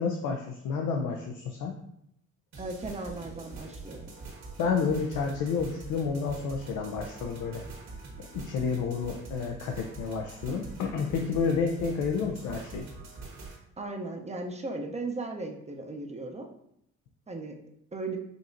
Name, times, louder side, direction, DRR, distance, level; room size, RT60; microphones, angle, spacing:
voice 1, 0.0-1.7 4.6-7.6 8.3-12.9, left 5 dB, 90° left, 2 dB, 0.5 m, -30 dB
sound 1, 2.5-13.6, right 3 dB, 60° right, 1.4 m, -44 dB
voice 2, 2.6-4.1 13.8-16.5 17.3-17.6 17.9-18.2, right 2 dB, 20° right, 3 dB, 0.6 m, -36 dB
5.2 x 2.9 x 2.6 m, 0.73 s
cardioid pair, 90°, 30 cm